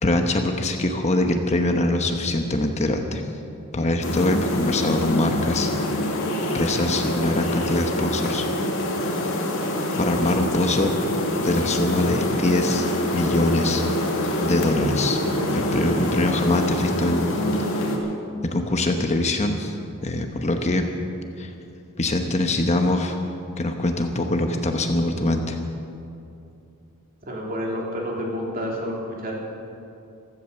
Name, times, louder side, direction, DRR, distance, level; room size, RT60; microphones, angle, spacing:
voice 1, 0.0-3.2 3.7-5.7 6.1-6.2 6.5-8.5 10.0-10.9 11.4-12.9 13.1-13.8 14.4-15.2 15.5-17.3 18.4-19.8 20.0-20.8 21.4-21.5 22.0-23.2 23.6-25.6, left 2 dB, 30° left, 5 dB, 1.0 m, -23 dB
sound 1, 4.0-18.0, left 1 dB, 60° left, 2.3 m, -25 dB
voice 2, 27.2-29.3, equal, 40° right, -2 dB, 3.1 m, -29 dB
15.5 x 14.0 x 6.8 m, 2.6 s
head